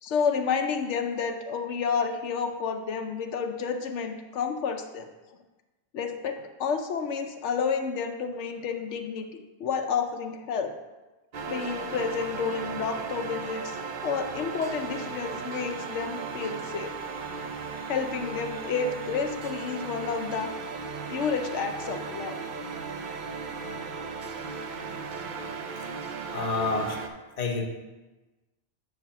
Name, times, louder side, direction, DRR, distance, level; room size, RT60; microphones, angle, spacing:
voice 1, 0.0-5.1 5.9-9.3 9.6-10.7 11.4-13.8 14.0-16.9 17.9-20.5 21.1-22.4, left 6 dB, 85° left, 6 dB, 1.0 m, -30 dB
sound 1, 11.3-27.1, right 4 dB, 50° right, 0.6 m, -36 dB
voice 2, 25.7-27.0 27.4-27.7, left 3 dB, 40° left, 3 dB, 0.9 m, -30 dB
8.5 x 3.3 x 5.7 m, 1.1 s
omnidirectional pair, 1.2 m